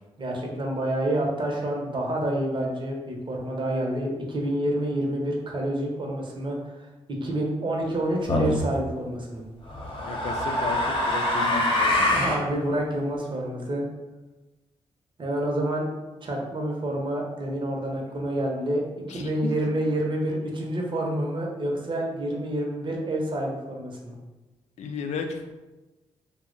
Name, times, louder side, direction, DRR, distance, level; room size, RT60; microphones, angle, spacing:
voice 1, 0.2-6.7 7.1-9.4 12.1-13.8 15.2-15.9 16.2-24.1, right 1 dB, 40° right, 0 dB, 0.8 m, -28 dB
sound 1, 8.3-8.7 9.7-12.4, left 1 dB, 45° left, 0.8 m, -24 dB
voice 2, 10.0-12.5 19.1-19.3 24.8-25.5, left 4 dB, 70° left, 5 dB, 0.4 m, -34 dB
2.7 x 2.1 x 3.8 m, 1.1 s
supercardioid pair, 50°, 12 cm